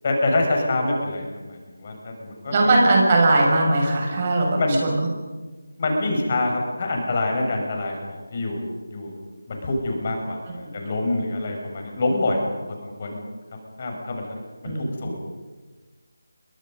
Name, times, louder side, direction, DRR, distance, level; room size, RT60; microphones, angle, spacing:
voice 1, 0.0-2.5 4.6-4.8 5.8-8.6 8.9-9.1 9.5-12.4 12.8-13.2 13.8-14.3 14.6-15.2, left 2 dB, 35° left, 2 dB, 6.2 m, -26 dB
voice 2, 2.5-5.1 10.5-10.7 14.6-15.0, right 2 dB, 30° right, 0 dB, 6.3 m, -20 dB
29.5 x 24.0 x 5.4 m, 1.3 s
figure-of-eight pair, 160°, 0 cm